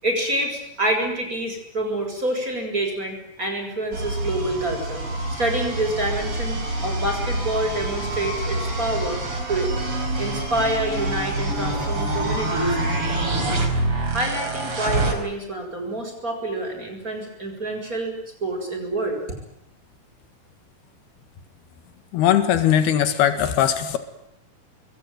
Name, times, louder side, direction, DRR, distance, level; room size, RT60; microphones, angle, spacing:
voice 1, 0.0-5.1 5.4-9.2 9.5-9.7 10.2-12.8 14.1-19.2, right 1 dB, 20° right, 3 dB, 7.6 m, -27 dB
sound 1, 3.9-15.1, right 2 dB, 35° right, 5.8 m, -26 dB
voice 2, 22.1-24.0, left 10 dB, 90° left, 8 dB, 3.8 m, -19 dB
28.0 x 22.0 x 9.3 m, 0.78 s
omnidirectional pair, 4.3 m